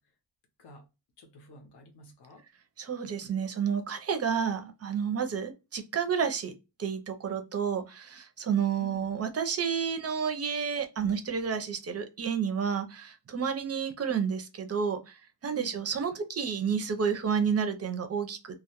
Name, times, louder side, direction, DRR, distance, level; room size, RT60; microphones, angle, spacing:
voice 1, 1.2-2.4 5.2-5.4 8.7-9.1 13.3-13.5 15.5-15.8, left 2 dB, 75° left, 0.7 m, -50 dB
voice 2, 2.8-6.5 6.8-15.1 15.4-18.6, right 7 dB, 40° right, 0.4 m, -30 dB
2.1 x 2.1 x 2.7 m
wide cardioid pair, 165°, 41 cm